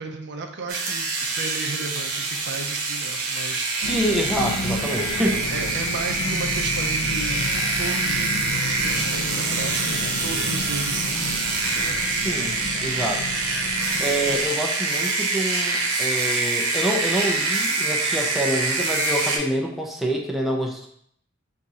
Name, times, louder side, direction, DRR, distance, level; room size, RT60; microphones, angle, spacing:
voice 1, 0.0-3.7 5.5-7.5 7.8-12.0, right 4 dB, 55° right, 4 dB, 0.5 m, -34 dB
sound 1, 0.7-19.4, right 3 dB, 85° right, 0.8 m, -25 dB
sound 2, 3.8-14.5, left 2 dB, 85° left, 0.6 m, -32 dB
voice 2, 3.8-5.4 12.2-12.5 12.8-13.2 14.0-20.9, right 1 dB, ahead, -1 dB, 0.4 m, -26 dB
3.6 x 2.7 x 4.1 m, 0.66 s
head